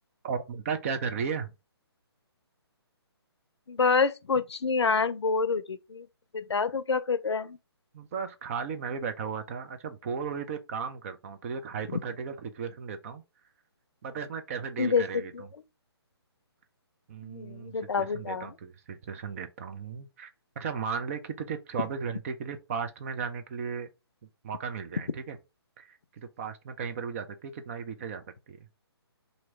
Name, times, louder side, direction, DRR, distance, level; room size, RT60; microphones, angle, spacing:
voice 1, 0.2-1.5 7.9-13.2 14.0-15.5 17.1-20.3 20.6-23.9 24.4-25.4 25.8-28.6, right 6 dB, 30° right, 0.5 m, -35 dB
voice 2, 3.7-6.1 6.3-7.6 14.8-15.0 17.2-18.5, left 5 dB, 85° left, 0.5 m, -27 dB
2.9 x 2.6 x 4.4 m
hypercardioid pair, 145°, 14 cm